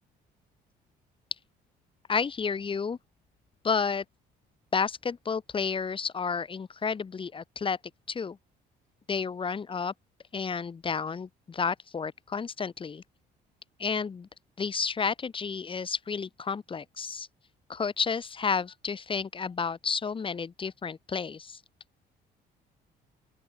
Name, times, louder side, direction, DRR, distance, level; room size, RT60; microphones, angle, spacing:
voice 1, 2.1-3.0 3.6-4.0 4.7-7.8 8.1-8.4 9.1-9.9 10.3-13.0 13.8-14.3 14.6-17.3 17.7-21.6, left 5 dB, 30° left, 4.0 m, -31 dB
open air
cardioid pair, 110°, 17 cm